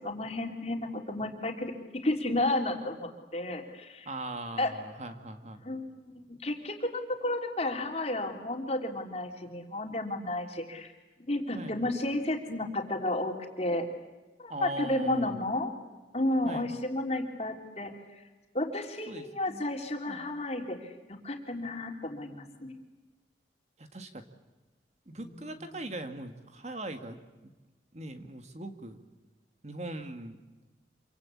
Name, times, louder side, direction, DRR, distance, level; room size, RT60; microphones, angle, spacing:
voice 1, 0.0-1.7 2.0-4.1 4.6-4.7 5.6-10.9 11.3-13.8 14.4-15.8 16.1-18.3 18.5-20.9 21.2-22.8 25.2-25.6, left 1 dB, 35° left, 3 dB, 3.5 m, -32 dB
voice 2, 4.0-5.6 11.5-11.8 14.5-15.4 16.4-16.7 19.1-19.6 20.1-20.2 23.8-24.2 25.1-27.5 27.9-29.0 29.6-30.4, right 1 dB, 35° right, 7 dB, 1.8 m, -40 dB
27.0 x 25.0 x 8.5 m, 1.2 s
head